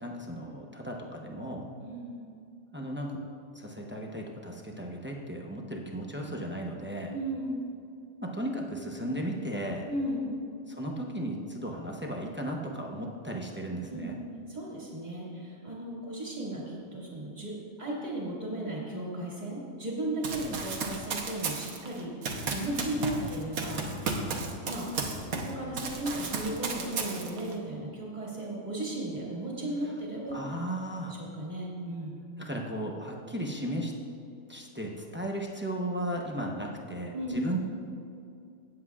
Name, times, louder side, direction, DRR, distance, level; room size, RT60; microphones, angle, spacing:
voice 1, 0.0-1.7 2.7-3.2 3.5-7.1 8.2-9.9 10.7-14.2 20.4-20.6 22.9-23.3 30.3-31.2 32.4-33.9 34.5-37.6, right 1 dB, 10° right, -1 dB, 0.6 m, -35 dB
voice 2, 1.8-2.2 7.1-7.6 9.9-10.3 13.9-14.1 14.5-17.5 17.8-22.1 22.5-23.9 24.7-24.9 25.3-30.4 31.2-32.2 37.1-37.4, right 1 dB, 30° right, -5 dB, 2.3 m, -35 dB
Run, 20.2-25.5 25.8-27.5, right 4 dB, 80° right, 1.4 m, -34 dB
17.5 x 7.8 x 2.4 m, 2.5 s
omnidirectional pair, 1.5 m